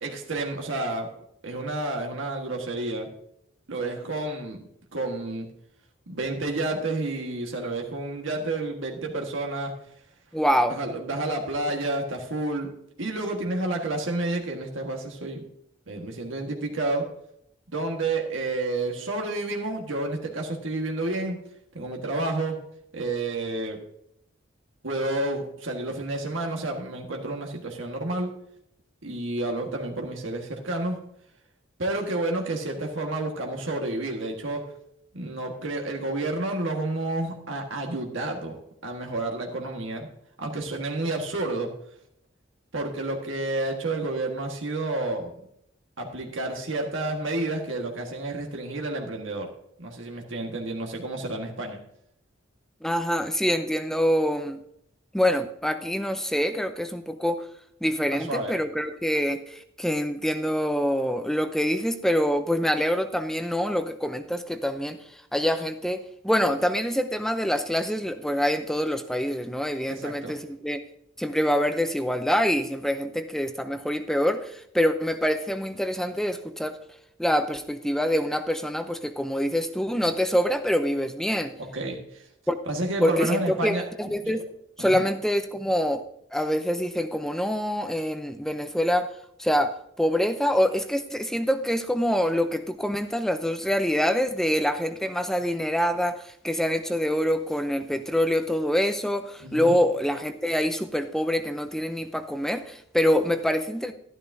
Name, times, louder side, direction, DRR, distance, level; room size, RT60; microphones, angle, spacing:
voice 1, 0.0-1.1 1.4-3.1 3.7-4.7 4.9-5.5 6.1-9.7 10.7-12.7 13.0-15.4 15.9-17.1 17.7-21.4 21.7-22.6 22.9-23.8 24.8-28.3 29.0-31.0 31.8-34.6 35.1-38.6 38.8-40.1 40.4-41.7 42.7-45.3 46.0-49.5 49.8-51.8 58.1-58.5 69.9-70.4 81.6-82.3 82.7-83.8 84.2-84.3 84.8-85.0 99.4-99.8, right 2 dB, 75° right, 2 dB, 1.6 m, -30 dB
voice 2, 10.3-10.8 52.8-54.6 55.1-57.5 57.8-70.8 71.2-76.8 77.2-81.5 82.5-82.6 83.0-84.4 84.8-86.0 86.3-89.1 89.4-89.7 90.0-103.9, equal, ahead, 8 dB, 0.5 m, -25 dB
12.5 x 12.0 x 2.7 m, 0.72 s
head